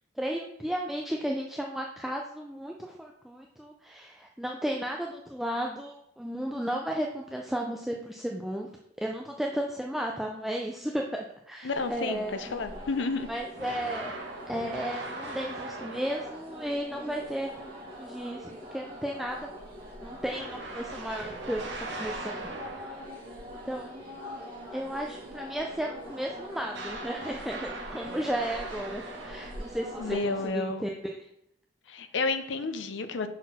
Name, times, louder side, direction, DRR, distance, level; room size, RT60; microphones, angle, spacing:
voice 1, 0.2-8.7 9.0-12.7 13.3-14.1 14.5-19.5 20.0-22.5 22.8-23.0 23.7-24.0 24.7-31.1, equal, ahead, 0 dB, 0.3 m, -34 dB
voice 2, 11.6-13.3 30.0-30.8 31.9-33.3, left 3 dB, 70° left, 9 dB, 0.6 m, -31 dB
sound 1, 11.7-30.5, equal, 25° right, 1.9 m, -43 dB
sound 2, 13.5-16.5 20.3-23.2 26.7-29.8, right 2 dB, 65° right, 1.1 m, -40 dB
6.0 x 4.2 x 4.1 m, 0.78 s
head